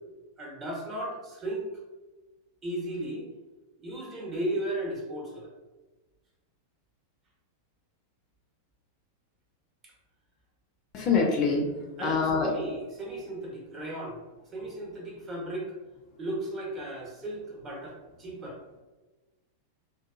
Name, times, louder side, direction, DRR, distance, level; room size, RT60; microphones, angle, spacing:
voice 1, 0.4-1.7 2.6-3.2 3.8-5.5 12.0-14.2 14.5-15.7 16.2-18.6, right 1 dB, 25° right, -2 dB, 0.8 m, -35 dB
voice 2, 10.9-12.5, left 4 dB, 40° left, 1 dB, 0.4 m, -25 dB
2.7 x 2.3 x 2.4 m, 1.2 s
figure-of-eight pair, 90°, 0 cm